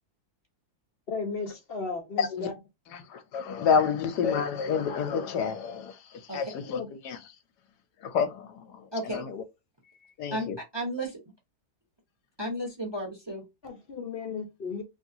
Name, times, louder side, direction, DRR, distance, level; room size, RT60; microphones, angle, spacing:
voice 1, 1.1-2.5 6.6-6.9 13.6-14.8, left 4 dB, 45° left, 0.9 m, -35 dB
voice 2, 2.2-2.5 2.9-7.2 8.0-9.4 10.2-10.6, left 6 dB, 85° left, 1.3 m, -29 dB
voice 3, 8.9-9.2 10.3-10.5 10.7-11.2 12.4-13.4, equal, 20° right, 0.9 m, -33 dB
3.2 x 2.9 x 2.7 m
omnidirectional pair, 1.8 m